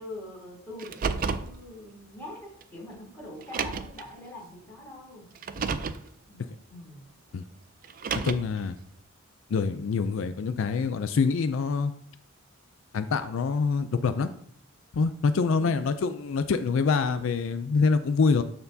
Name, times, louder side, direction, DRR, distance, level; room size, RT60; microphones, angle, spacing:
voice 1, 0.0-5.3 6.3-7.0 15.6-15.9, left 1 dB, 10° left, -6 dB, 3.1 m, -44 dB
Car, 0.8-1.5 2.6-2.7 3.4-4.0 5.3-6.0 7.8-8.6, right 5 dB, 40° right, 0.4 m, -30 dB
voice 2, 8.2-8.8 9.5-11.9 12.9-14.3 14.9-18.4, left 5 dB, 65° left, 11 dB, 0.4 m, -25 dB
12.5 x 4.4 x 2.7 m, 0.64 s
head